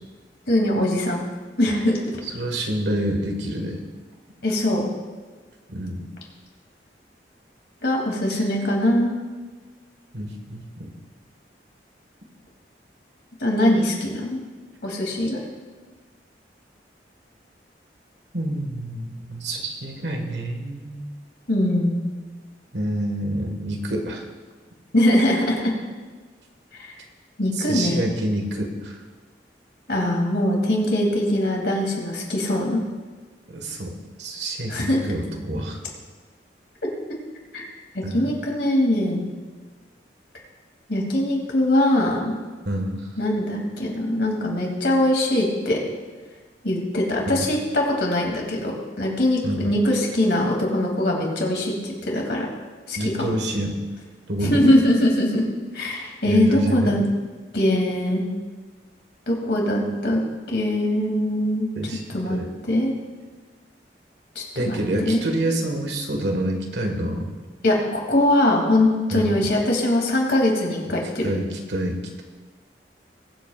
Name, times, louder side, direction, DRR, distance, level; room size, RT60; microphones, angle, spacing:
voice 1, 0.5-1.2 1.6-2.2 4.4-4.9 7.8-9.2 13.4-14.4 14.8-15.4 21.5-22.0 24.9-25.7 26.8-26.9 27.4-28.1 29.9-32.8 34.7-35.0 37.5-37.7 37.9-39.3 40.9-42.3 43.2-45.8 46.6-52.5 52.9-53.3 54.4-55.4 55.7-57.0 57.5-58.3 59.3-60.2 60.5-61.7 62.1-62.4 62.7-62.9 64.3-64.8 65.0-65.2 67.6-71.2, left 1 dB, 70° left, 0 dB, 2.7 m, -22 dB
voice 2, 2.2-3.8 5.7-6.0 8.3-8.4 10.1-10.9 18.3-21.1 22.7-24.2 27.6-29.0 33.5-35.8 38.0-38.3 42.6-43.0 47.3-47.5 49.4-49.7 53.0-53.8 54.3-54.7 56.3-57.0 61.7-62.5 64.5-67.4 69.1-69.5 71.2-72.2, right 1 dB, 75° right, 3 dB, 1.6 m, -27 dB
22.0 x 8.1 x 2.5 m, 1.4 s
head